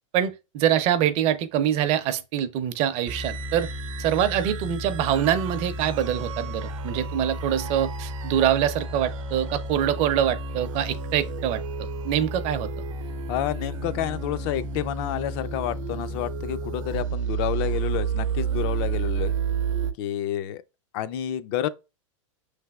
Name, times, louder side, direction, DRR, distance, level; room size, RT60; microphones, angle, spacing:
voice 1, 0.1-3.7 4.0-12.8, right 10 dB, 40° right, 0.6 m, -25 dB
sound 1, 3.1-19.9, right 4 dB, 75° right, 0.7 m, -31 dB
voice 2, 13.3-19.3 20.0-20.6 20.9-21.7, left 11 dB, 50° left, 0.4 m, -29 dB
5.6 x 3.3 x 2.3 m
hypercardioid pair, 130°, 17 cm